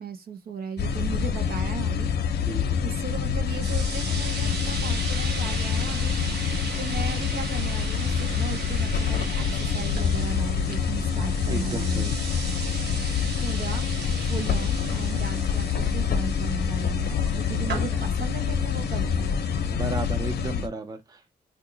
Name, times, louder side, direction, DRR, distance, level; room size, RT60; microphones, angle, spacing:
voice 1, 0.0-2.1 2.8-6.2 6.8-12.1 13.4-13.9 14.3-19.4, right 6 dB, 65° right, 0.6 m, -36 dB
sound 1, 0.8-20.7, left 7 dB, 70° left, 0.6 m, -26 dB
voice 2, 2.4-2.8 11.5-12.2 17.5-17.9 19.7-21.3, right 3 dB, 20° right, 0.5 m, -34 dB
sound 2, 3.6-20.1, right 4 dB, 80° right, 0.9 m, -38 dB
2.8 x 2.3 x 3.8 m
wide cardioid pair, 155°, 17 cm